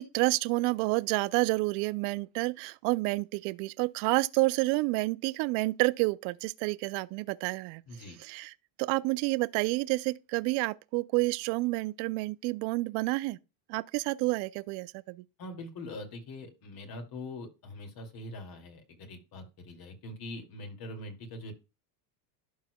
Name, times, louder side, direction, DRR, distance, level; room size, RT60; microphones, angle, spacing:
voice 1, 0.0-7.8 8.2-8.5 8.8-13.4 13.7-15.2, right 23 dB, 55° right, 0.6 m, -29 dB
voice 2, 7.9-8.2 15.4-21.5, left 1 dB, 45° left, 2.5 m, -43 dB
12.0 x 4.8 x 2.2 m
supercardioid pair, 110°, 50 cm